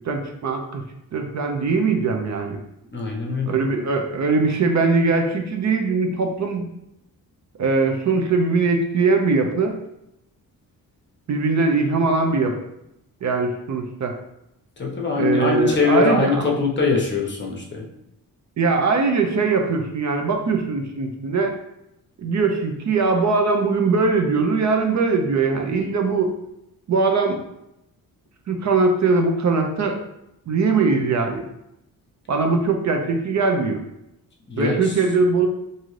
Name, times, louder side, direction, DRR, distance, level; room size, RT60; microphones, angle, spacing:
voice 1, 0.0-0.8 1.1-2.6 3.5-6.7 7.6-9.7 11.3-12.6 13.2-14.2 15.2-16.5 18.6-21.5 22.2-26.3 26.9-27.4 28.5-30.0 30.5-31.4 32.3-33.8 34.6-35.5, right 4 dB, 50° right, 4 dB, 0.6 m, -21 dB
voice 2, 2.9-3.5 14.8-17.8 34.5-35.0, left 4 dB, 30° left, -1 dB, 0.7 m, -22 dB
3.7 x 2.7 x 3.1 m, 0.83 s
wide cardioid pair, 125°, 36 cm